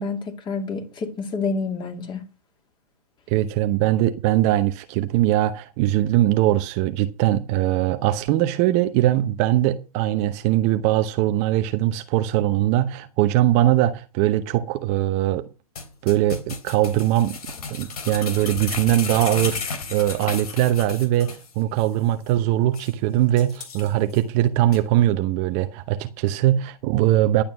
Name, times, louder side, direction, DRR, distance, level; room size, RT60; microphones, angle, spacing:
voice 1, 0.0-2.2, left 4 dB, 25° left, 2.9 m, -28 dB
voice 2, 3.3-15.5 16.0-17.4 17.7-27.4, right 13 dB, 35° right, 0.9 m, -21 dB
sound 1, 15.8-21.5 21.8-21.9 22.3-22.4 22.7-22.9 23.4-24.2 24.7-24.8, left 5 dB, 75° left, 3.1 m, -33 dB
11.5 x 8.7 x 6.0 m
hypercardioid pair, 115°, 19 cm